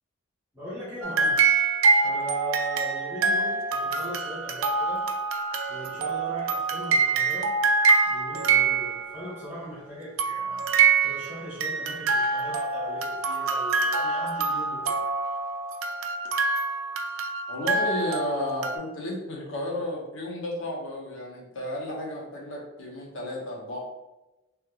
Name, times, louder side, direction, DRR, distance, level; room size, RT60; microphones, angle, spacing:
voice 1, 0.5-1.4 2.0-5.0 5.7-7.5 8.0-10.6 11.0-15.0, left 1 dB, 10° right, -10 dB, 1.3 m, -39 dB
sound 1, 1.0-9.4 10.2-18.8, right 4 dB, 85° right, 0.4 m, -25 dB
voice 2, 17.5-23.8, left 1 dB, 70° left, -2 dB, 0.9 m, -33 dB
3.2 x 3.2 x 2.3 m, 0.99 s
head